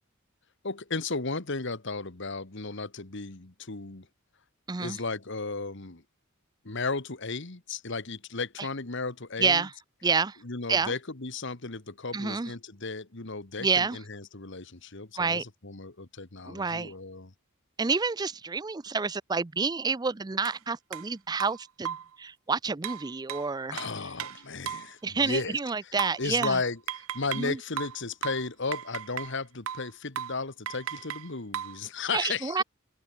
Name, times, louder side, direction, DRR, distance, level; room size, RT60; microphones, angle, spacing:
voice 1, 0.6-4.1 4.8-6.0 6.6-9.6 10.4-17.3 23.7-25.6 26.2-32.6, left 4 dB, 60° left, 1.7 m, -34 dB
voice 2, 4.7-5.0 8.6-8.7 9.4-9.7 10.0-10.4 10.7-10.9 12.1-12.5 13.6-14.0 15.2-15.4 16.5-16.9 17.8-23.8 25.0-26.6 27.4-27.6 32.1-32.6, right 4 dB, 20° right, 0.4 m, -29 dB
sound 1, 20.5-20.6 20.9-21.1 21.4-22.2 22.8-24.9 26.0-27.5 27.8-29.4 29.7-29.9 30.2-30.4 30.7-31.8, right 9 dB, 75° right, 0.5 m, -36 dB
head